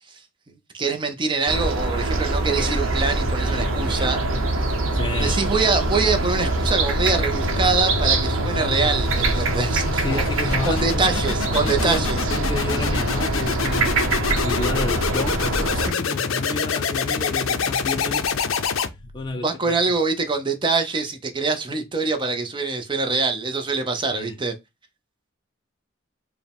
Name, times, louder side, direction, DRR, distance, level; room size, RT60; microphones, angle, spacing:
voice 1, 0.5-4.2 5.2-10.2 10.6-12.2 19.4-24.5, right 4 dB, 25° right, 0.6 m, -24 dB
sound 1, 1.5-15.9, right 2 dB, 75° right, 0.8 m, -24 dB
sound 2, 3.2-19.3, left 5 dB, 75° left, 0.5 m, -27 dB
voice 2, 4.9-5.4 10.0-11.0 11.6-18.6 19.1-19.8 24.1-24.3, left 2 dB, 20° left, 0.4 m, -31 dB
4.7 x 2.2 x 3.4 m
head